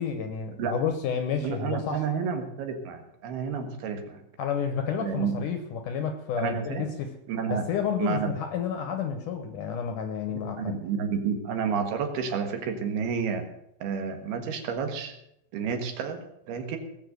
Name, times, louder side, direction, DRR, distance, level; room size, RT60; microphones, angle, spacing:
voice 1, 0.0-2.1 4.4-7.2 7.5-10.8, left 7 dB, 65° left, 7 dB, 2.2 m, -30 dB
voice 2, 1.4-4.2 5.0-5.4 6.4-6.9 7.3-7.7 8.0-8.3 10.6-13.5 13.8-15.1 15.5-16.8, right 6 dB, 75° right, 6 dB, 3.5 m, -30 dB
19.0 x 6.9 x 8.0 m, 0.78 s
omnidirectional pair, 4.7 m